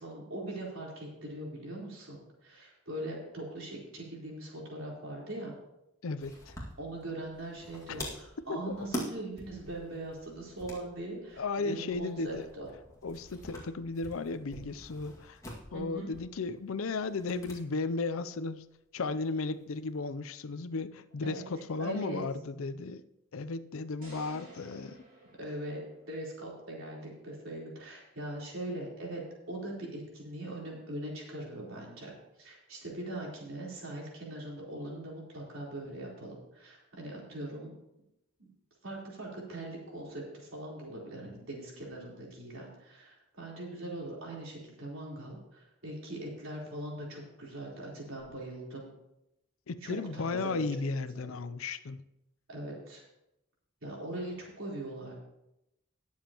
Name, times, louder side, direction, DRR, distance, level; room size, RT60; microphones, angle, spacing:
voice 1, 0.0-5.5 6.8-12.7 15.7-16.1 19.4-19.5 21.2-21.4 21.8-22.2 25.4-25.8 26.1-32.1 32.4-37.7 38.8-48.9 49.8-50.6 52.5-53.0 53.8-55.1, right 1 dB, 75° right, -3 dB, 3.9 m, -41 dB
voice 2, 6.0-6.5 7.9-8.0 8.7-8.9 11.4-12.5 13.0-15.4 15.7-18.6 18.9-23.0 23.3-25.0 49.7-52.0, left 3 dB, 80° left, 13 dB, 0.5 m, -35 dB
sound 1, 6.2-17.6 17.9-18.0 19.2-19.9, equal, 15° left, 2.1 m, -45 dB
sound 2, 24.0-26.3, right 2 dB, 40° right, 2.9 m, -53 dB
19.0 x 7.3 x 3.0 m, 0.88 s
head